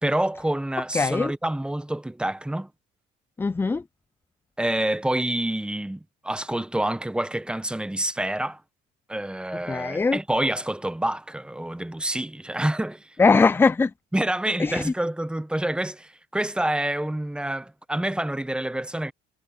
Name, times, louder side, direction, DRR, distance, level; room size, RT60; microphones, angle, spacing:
voice 1, 0.0-2.7 4.6-8.6 9.1-13.1 14.1-19.1, right 1 dB, 5° right, 1.3 m, -27 dB
voice 2, 0.9-1.3 3.4-3.8 9.7-10.2 13.2-13.9 14.6-14.9, left 4 dB, 15° left, 0.4 m, -20 dB
cardioid pair, 110°, 17 cm